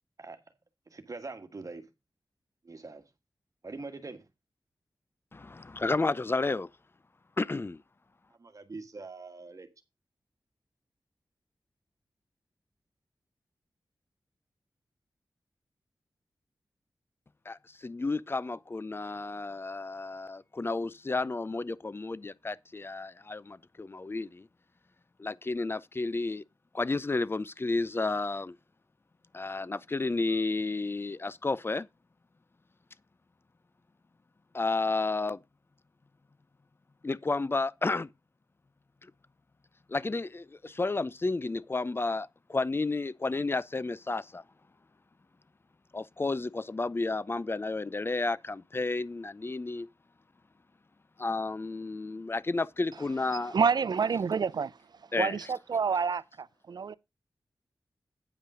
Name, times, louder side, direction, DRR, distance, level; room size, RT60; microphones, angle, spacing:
voice 1, 0.9-1.8 2.6-3.0 3.6-4.2 8.4-9.7, right 3 dB, 50° right, 1.5 m, -43 dB
voice 2, 5.3-6.7 7.4-7.8 17.5-24.5 25.2-26.4 26.7-28.6 29.3-31.9 34.5-35.4 37.0-38.1 39.0-39.1 39.9-44.4 45.9-49.9 51.2-53.6 55.1-55.5, left 3 dB, 30° left, 0.5 m, -32 dB
voice 3, 53.5-54.7 55.2-56.9, right 6 dB, 70° right, 0.5 m, -28 dB
9.4 x 5.5 x 4.9 m
wide cardioid pair, 65°, 7 cm